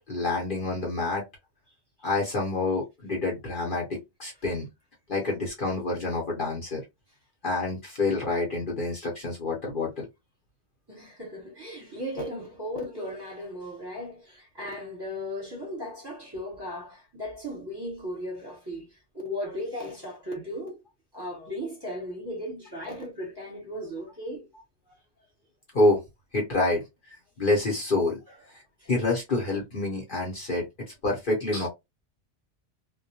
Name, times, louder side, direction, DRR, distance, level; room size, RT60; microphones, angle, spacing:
voice 1, 0.1-1.2 2.0-4.7 5.1-6.8 7.4-10.1 25.7-26.0 26.3-28.2 28.5-28.6 28.9-31.7, left 2 dB, 50° left, 0.9 m, -27 dB
voice 2, 10.9-20.8 21.1-24.5 28.8-28.9, equal, 20° right, 1.0 m, -36 dB
2.2 x 2.1 x 2.8 m
omnidirectional pair, 1.2 m